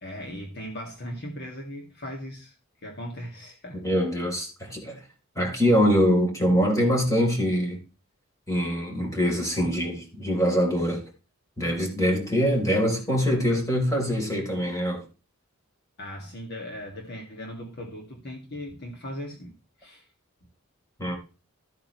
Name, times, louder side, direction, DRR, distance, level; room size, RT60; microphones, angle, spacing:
voice 1, 0.0-2.6 2.8-3.9 16.0-19.5 19.8-20.1, equal, 50° left, 2.2 m, -38 dB
voice 2, 3.8-5.0 5.4-7.8 8.5-11.0 11.6-15.0 21.0-21.2, equal, 15° left, 3.9 m, -24 dB
14.0 x 9.0 x 3.2 m
head